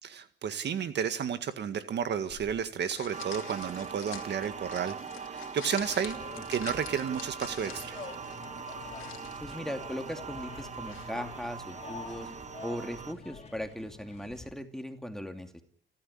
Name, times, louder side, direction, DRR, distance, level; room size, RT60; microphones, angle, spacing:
voice 1, 0.0-5.0 5.3-6.2 6.5-8.0, right 7 dB, 60° right, 10 dB, 1.9 m, -32 dB
sound 1, 2.3-13.7, left 11 dB, 85° left, 2.7 m, -49 dB
sound 2, 3.1-13.1, right 6 dB, 35° right, 1.1 m, -42 dB
sound 3, 5.8-14.5, left 4 dB, 30° left, 2.8 m, -47 dB
voice 2, 9.4-12.3 12.6-15.6, equal, ahead, 6 dB, 2.7 m, -38 dB
29.0 x 13.0 x 10.0 m, 0.64 s
cardioid pair, 90°, 20 cm